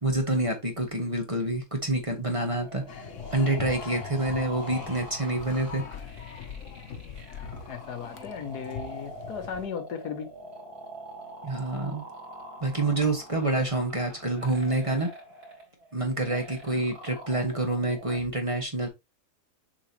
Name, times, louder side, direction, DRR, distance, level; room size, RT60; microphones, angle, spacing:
voice 1, 0.0-3.0 3.3-5.8 11.4-12.0 12.6-15.1 15.9-18.9, right 2 dB, 20° right, 1.4 m, -27 dB
sound 1, 2.4-18.3, right 1 dB, 70° right, 3.4 m, -44 dB
sound 2, 2.9-9.7, left 7 dB, 60° left, 1.0 m, -41 dB
voice 2, 7.7-10.3, left 7 dB, 80° left, 1.6 m, -36 dB
7.2 x 5.0 x 2.8 m
omnidirectional pair, 1.7 m